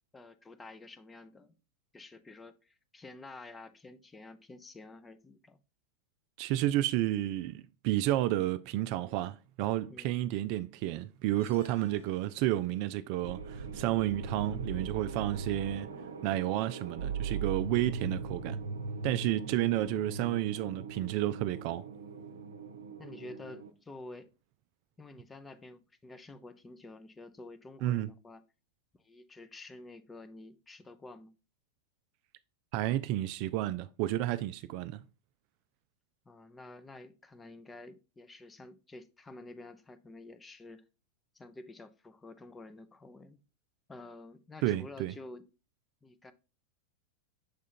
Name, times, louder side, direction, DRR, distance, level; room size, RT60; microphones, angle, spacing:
voice 1, 0.1-1.6 1.9-5.6 9.9-10.3 23.0-24.3 25.0-28.4 29.0-31.3 36.3-40.8 41.3-43.4 43.9-45.4 46.0-46.3, left 2 dB, 15° left, 0.6 m, -50 dB
voice 2, 6.4-15.9 16.2-18.6 19.0-21.9 27.8-28.1 32.7-35.0 44.6-45.1, right 14 dB, 45° right, 0.3 m, -31 dB
sound 1, 11.4-12.9, right 4 dB, 70° left, 3.6 m, -53 dB
sound 2, 13.2-23.7, right 4 dB, 70° right, 0.7 m, -39 dB
6.5 x 3.6 x 4.3 m
figure-of-eight pair, 90°, 0 cm